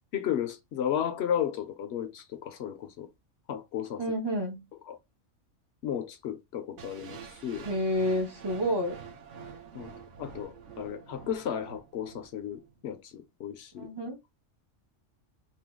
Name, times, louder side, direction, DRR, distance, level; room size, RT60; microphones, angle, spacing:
voice 1, 0.1-3.1 3.5-4.0 4.9-5.0 5.8-7.7 9.7-13.9, left 9 dB, 65° left, 0.8 m, -34 dB
voice 2, 4.0-4.6 7.6-9.0 13.8-14.2, equal, 30° right, 0.5 m, -29 dB
sound 1, 6.8-12.8, right 7 dB, 75° right, 0.9 m, -47 dB
2.8 x 2.2 x 3.4 m
omnidirectional pair, 1.3 m